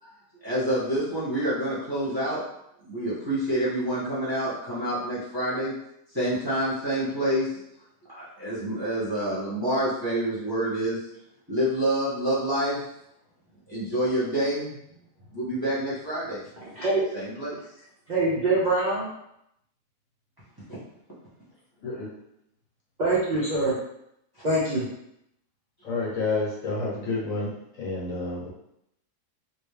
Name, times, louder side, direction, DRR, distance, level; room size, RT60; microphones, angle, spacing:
voice 1, 0.4-2.4 2.8-5.7 6.1-7.6 8.1-11.0 11.5-12.8 13.7-14.8 15.3-16.4 17.1-17.6, right 1 dB, 15° right, -10 dB, 1.1 m, -27 dB
voice 2, 16.6-17.0 18.1-19.1 23.0-23.7 24.4-24.8, right 2 dB, 45° right, -7 dB, 0.6 m, -24 dB
voice 3, 25.8-27.5 27.8-28.5, left 3 dB, 55° left, -5 dB, 1.3 m, -29 dB
3.3 x 2.7 x 3.3 m, 0.78 s
omnidirectional pair, 1.8 m